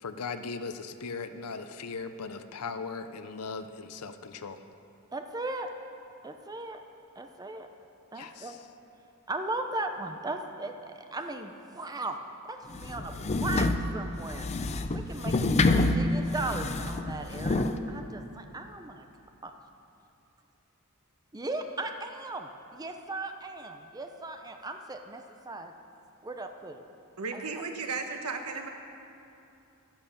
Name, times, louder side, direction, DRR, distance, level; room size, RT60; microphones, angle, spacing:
voice 1, 0.0-4.6 8.2-8.6, left 4 dB, 85° left, 9 dB, 0.6 m, -38 dB
voice 2, 5.1-5.7 6.2-6.8 7.2-7.7 8.1-8.6 9.3-12.2 12.5-14.5 14.9-19.1 19.4-19.5 21.3-25.7 26.2-26.8 27.3-27.6, right 2 dB, 15° right, 6 dB, 0.6 m, -37 dB
sound 1, 12.7-17.8, left 2 dB, 30° left, 0.5 m, -27 dB
voice 3, 27.2-28.7, right 4 dB, 85° right, 4 dB, 1.2 m, -34 dB
12.0 x 10.5 x 7.2 m, 2.7 s
head